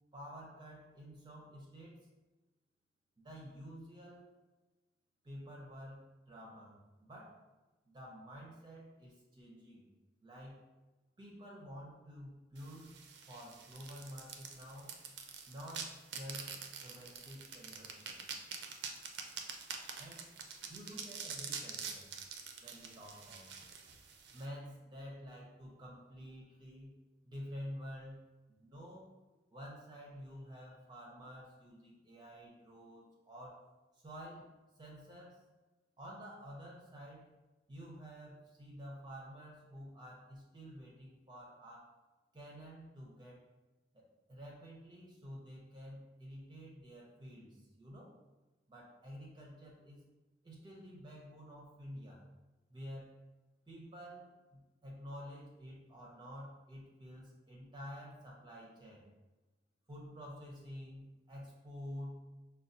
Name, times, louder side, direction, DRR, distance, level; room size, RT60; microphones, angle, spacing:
voice 1, 0.1-2.1 3.2-4.3 5.2-7.4 7.9-9.8 10.2-10.7 11.2-12.9 13.3-14.9 15.5-16.6 16.8-18.4 20.0-20.3 20.7-22.1 22.6-23.5 24.3-26.9 27.2-28.2 28.5-29.1 29.5-33.6 33.9-34.5 34.8-35.4 36.0-37.3 37.7-41.9 42.3-43.4 43.9-48.1 48.7-50.0 50.4-52.2 52.7-53.2 53.7-59.0 59.9-62.2, equal, 25° right, -3 dB, 0.5 m, -50 dB
sound 1, 12.6-24.5, right 6 dB, 75° right, 0.4 m, -46 dB
5.2 x 2.2 x 2.6 m, 1.1 s
head